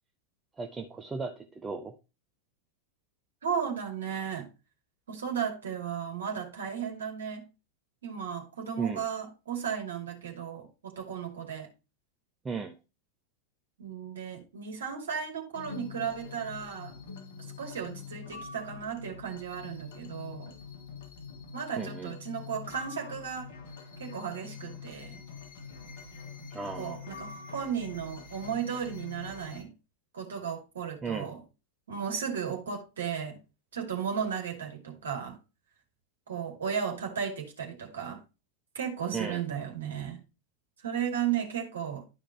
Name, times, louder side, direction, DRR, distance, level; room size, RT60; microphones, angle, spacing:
voice 1, 0.6-1.9 8.8-9.0 12.4-12.8 21.8-22.1 26.5-27.0 31.0-31.3 39.1-39.4, right 5 dB, 15° right, 0.8 m, -35 dB
voice 2, 3.4-4.5 5.1-7.5 8.0-11.7 13.8-17.0 17.6-20.5 21.5-23.5 24.0-25.2 26.7-29.7 30.1-31.4 31.9-33.4 33.7-35.4 36.3-38.2 38.7-40.2 40.8-42.0, right 7 dB, 65° right, 2.3 m, -35 dB
sound 1, 15.5-29.6, left 5 dB, 55° left, 1.7 m, -45 dB
12.0 x 5.1 x 2.8 m
figure-of-eight pair, 90°, 0 cm